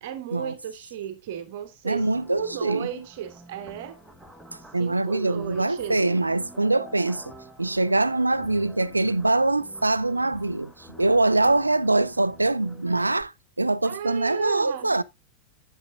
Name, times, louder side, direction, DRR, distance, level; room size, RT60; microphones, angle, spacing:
voice 1, 0.0-2.1 2.4-4.0 4.8-6.0 13.8-15.0, right 10 dB, 50° right, 1.0 m, -34 dB
voice 2, 1.8-2.9 4.7-7.3 7.6-13.3 13.6-15.0, right 2 dB, 85° right, 0.4 m, -23 dB
sound 1, 2.0-13.2, right 1 dB, ahead, 1.3 m, -48 dB
8.6 x 8.5 x 2.4 m
figure-of-eight pair, 90°, 0 cm